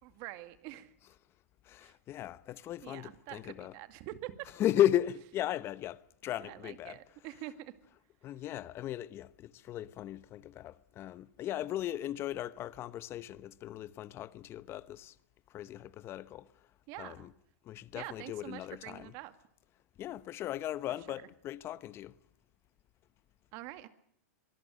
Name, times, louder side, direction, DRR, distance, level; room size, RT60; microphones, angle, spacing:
voice 1, 0.0-0.9 1.8-2.0 2.8-4.5 6.4-7.7 16.9-17.3 17.9-19.3 21.1-21.3 23.5-23.9, right 15 dB, 45° right, 2.2 m, -45 dB
voice 2, 1.6-3.8 4.4-7.4 8.2-15.1 15.5-16.5 17.0-17.3 17.6-19.2 20.0-22.1, left 12 dB, 30° left, 1.0 m, -36 dB
25.0 x 19.5 x 6.5 m
hypercardioid pair, 135°, 8 cm